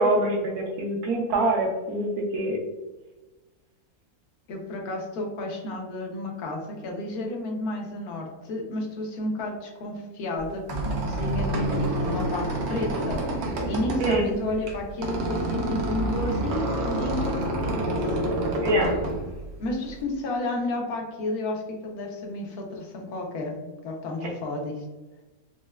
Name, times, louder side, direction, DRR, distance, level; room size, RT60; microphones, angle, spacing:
voice 1, 0.0-2.6 14.0-14.3 18.6-19.0 24.2-24.3, right 1 dB, 90° right, -1 dB, 1.3 m, -24 dB
voice 2, 4.5-13.2 13.6-18.0 19.6-24.8, left 2 dB, 80° left, 1 dB, 1.2 m, -32 dB
Squeak, 10.4-20.0, right 1 dB, 60° right, 0.8 m, -28 dB
4.2 x 2.1 x 2.2 m, 1.1 s
omnidirectional pair, 1.5 m